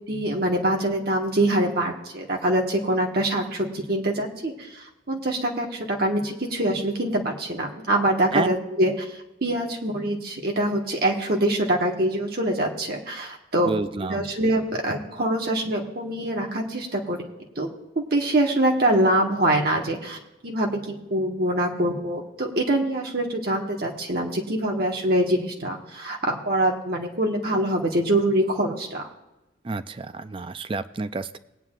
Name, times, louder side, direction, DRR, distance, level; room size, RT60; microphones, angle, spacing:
voice 1, 0.1-17.2 17.6-17.7 17.9-20.2 20.4-20.8 21.1-29.0, right 1 dB, 50° right, 1 dB, 1.4 m, -24 dB
voice 2, 13.6-14.2 29.6-31.4, right 3 dB, 25° right, 12 dB, 0.4 m, -29 dB
19.5 x 9.3 x 2.4 m, 0.98 s
head